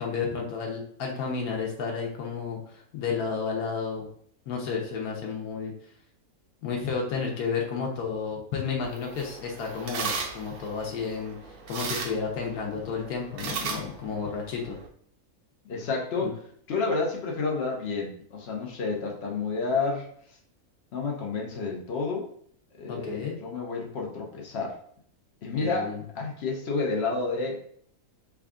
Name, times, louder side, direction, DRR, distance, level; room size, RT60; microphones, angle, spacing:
voice 1, 0.0-4.1 4.5-5.7 6.6-14.7 16.2-16.3 22.9-23.4 25.5-26.0, left 5 dB, 90° left, 0 dB, 1.2 m, -32 dB
sound 1, 8.8-14.9, right 5 dB, 80° right, 1.1 m, -37 dB
voice 2, 15.6-16.4 16.7-20.1 20.9-22.3 22.8-24.8 25.4-27.6, left 4 dB, 55° left, -1 dB, 0.9 m, -30 dB
3.5 x 2.4 x 3.6 m, 0.63 s
omnidirectional pair, 1.5 m